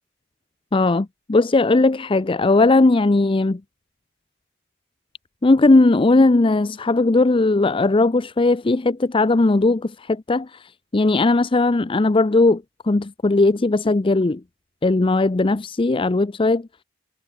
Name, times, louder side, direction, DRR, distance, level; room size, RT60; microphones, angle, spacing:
voice 1, 0.7-3.6 5.4-10.5 10.9-14.4 14.8-16.6, left 2 dB, 25° left, 0.5 m, -18 dB
head